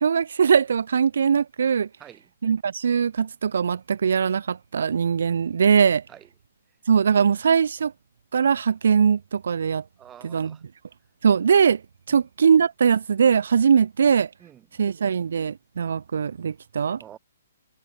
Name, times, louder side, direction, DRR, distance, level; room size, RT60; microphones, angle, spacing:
voice 1, 0.0-1.9 2.4-6.0 6.9-7.9 8.3-9.8 10.2-10.6 11.2-11.8 12.1-14.3 14.8-17.0, right 6 dB, 75° right, 1.0 m, -21 dB
voice 2, 2.0-2.3 6.1-6.3 10.0-10.6 12.1-12.3 14.4-14.8 17.0-17.2, right 10 dB, 15° right, 3.8 m, -48 dB
hypercardioid pair, 150°, 0 cm